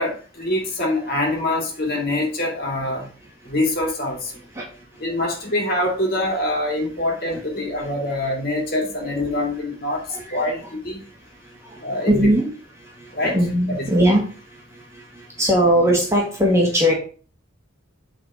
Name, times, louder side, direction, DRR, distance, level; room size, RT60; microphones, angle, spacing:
voice 1, 0.0-3.1 3.4-4.4 5.0-11.0 11.8-12.3 13.1-13.4 13.7-13.9, left 1 dB, 45° left, 0 dB, 2.6 m, -24 dB
voice 2, 12.1-12.4 13.2-14.2 15.4-16.9, equal, 15° right, -2 dB, 1.9 m, -18 dB
8.0 x 4.2 x 4.9 m, 0.38 s
head